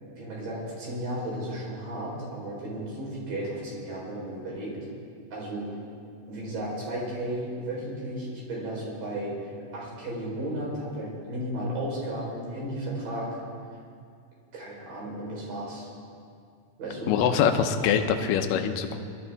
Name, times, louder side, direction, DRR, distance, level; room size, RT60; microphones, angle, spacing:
voice 1, 0.0-4.8 5.3-5.7 6.3-13.4 14.5-15.9 16.8-17.2, right 1 dB, 60° right, -4 dB, 5.5 m, -34 dB
voice 2, 17.1-19.0, left 7 dB, 75° left, 7 dB, 2.2 m, -24 dB
22.0 x 12.5 x 3.5 m, 2.3 s
omnidirectional pair, 4.5 m